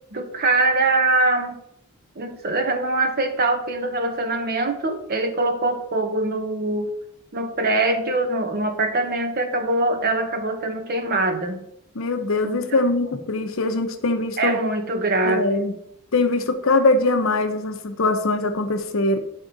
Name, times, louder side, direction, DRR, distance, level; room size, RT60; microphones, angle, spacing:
voice 1, 0.1-1.6 2.2-6.9 7.3-11.6 12.4-12.8 14.4-15.5, right 2 dB, 45° right, 6 dB, 0.8 m, -23 dB
voice 2, 11.9-14.6 15.2-15.7 16.1-19.2, left 2 dB, 65° left, 7 dB, 0.7 m, -22 dB
9.3 x 3.6 x 3.9 m, 0.74 s
head